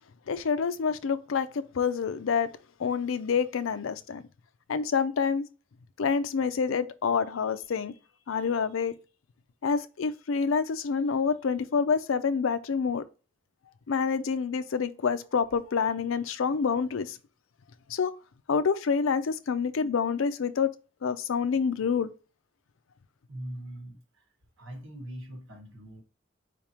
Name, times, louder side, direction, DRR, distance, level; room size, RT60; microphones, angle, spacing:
voice 1, 0.3-2.5 2.8-4.2 4.7-5.5 6.0-7.9 8.3-8.9 9.6-13.0 13.9-17.2 17.9-18.1 18.5-20.7 21.0-22.1, left 6 dB, 85° left, 0.5 m, -27 dB
voice 2, 23.3-24.2 24.6-26.0, right 1 dB, 85° right, 1.4 m, -42 dB
4.8 x 3.4 x 2.9 m
head